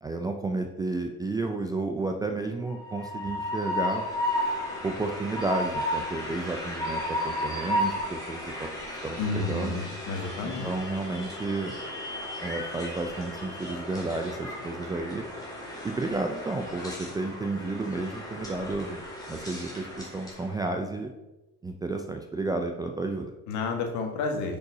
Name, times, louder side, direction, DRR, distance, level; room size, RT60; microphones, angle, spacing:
voice 1, 0.0-4.1 4.8-8.7 9.0-9.8 10.4-11.7 12.4-15.3 15.8-19.0 19.3-21.1 21.6-23.3, right 3 dB, 10° right, 4 dB, 0.3 m, -32 dB
Train, 2.7-20.5, left 1 dB, 10° left, 2.1 m, -34 dB
voice 2, 9.2-10.7 23.5-24.6, left 4 dB, 60° left, 4 dB, 1.4 m, -30 dB
5.8 x 5.4 x 3.9 m, 1.0 s
cardioid pair, 125°, 34 cm